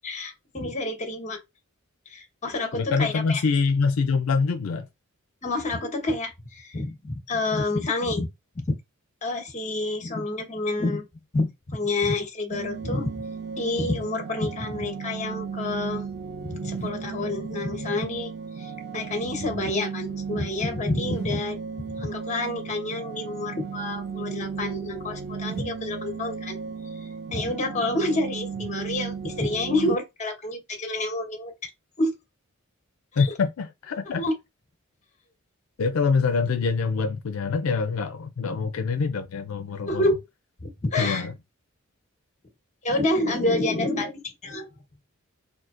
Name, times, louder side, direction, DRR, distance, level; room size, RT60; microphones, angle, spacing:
voice 1, 0.0-1.4 2.1-3.4 5.4-8.3 8.5-8.8 9.2-11.0 11.3-13.1 13.6-16.1 16.4-21.6 22.0-26.6 26.9-31.7 32.0-32.1 33.1-33.3 34.1-34.3 39.8-40.2 40.6-41.3 42.8-44.7, left 2 dB, 35° left, 1.2 m, -28 dB
voice 2, 2.8-4.9 33.2-34.2 35.8-40.0 41.0-41.3, left 4 dB, 80° left, 0.4 m, -25 dB
sound 1, 12.5-30.0, right 6 dB, 50° right, 0.4 m, -35 dB
5.8 x 2.7 x 2.5 m
head